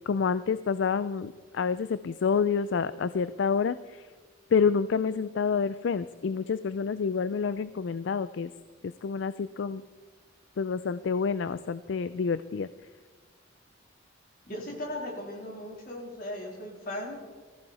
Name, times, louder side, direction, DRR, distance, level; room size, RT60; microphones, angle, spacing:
voice 1, 0.1-3.7 4.5-8.5 9.0-9.8 10.6-12.7, left 5 dB, 65° left, 14 dB, 0.4 m, -28 dB
voice 2, 14.5-17.2, left 1 dB, 45° left, -2 dB, 3.7 m, -37 dB
20.0 x 14.5 x 4.2 m, 1.4 s
head